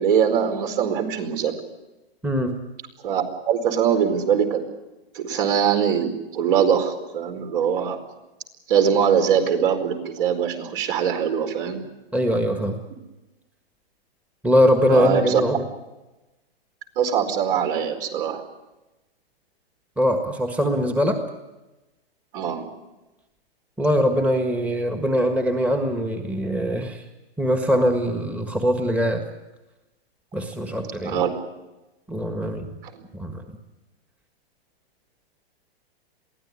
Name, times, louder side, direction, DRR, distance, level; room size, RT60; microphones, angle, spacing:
voice 1, 0.0-1.5 3.0-4.6 5.1-8.0 8.7-11.8 14.9-15.4 17.0-18.4 22.3-22.6 31.0-31.3 32.9-33.0, right 8 dB, 55° right, 5 dB, 4.7 m, -22 dB
voice 2, 2.2-2.5 12.1-12.8 14.4-15.6 20.0-21.2 23.8-27.0 27.4-29.2 30.3-31.2 32.1-32.7 33.1-33.4, equal, 5° right, 4 dB, 1.6 m, -22 dB
22.5 x 16.5 x 9.9 m, 1.0 s
hypercardioid pair, 145°, 31 cm